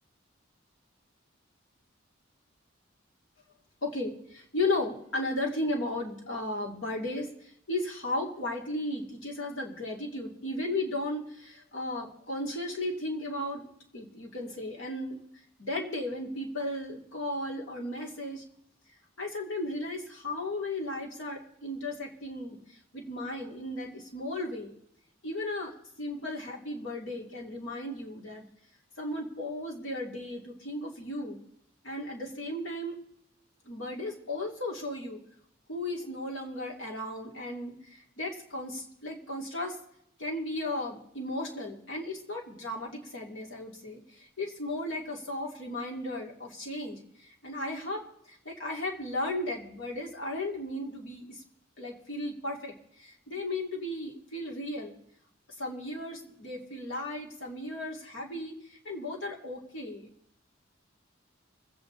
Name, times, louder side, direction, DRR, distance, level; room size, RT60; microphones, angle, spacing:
voice 1, 3.8-13.7 13.9-15.2 15.6-18.4 19.2-24.7 25.2-28.5 29.0-31.4 31.8-33.0 33.6-35.2 35.7-39.8 40.2-51.4 51.8-55.0 55.6-60.1, left 1 dB, 75° left, -1 dB, 2.9 m, -35 dB
25.0 x 8.7 x 4.0 m, 0.74 s
head